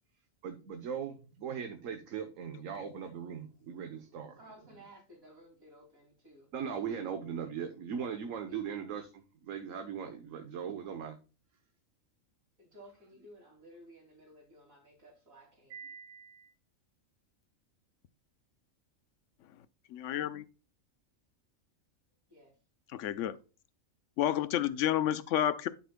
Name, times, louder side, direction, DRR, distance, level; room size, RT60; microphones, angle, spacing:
voice 1, 0.4-4.4 6.5-11.2 15.7-16.5, right 7 dB, 75° right, 1.3 m, -39 dB
voice 2, 4.4-6.5 8.5-8.6 12.6-15.8 22.3-22.6, equal, 90° right, 3.1 m, -56 dB
voice 3, 19.9-20.4 22.9-23.4 24.2-25.7, left 11 dB, 70° left, 0.9 m, -30 dB
11.5 x 6.1 x 2.2 m
omnidirectional pair, 1.4 m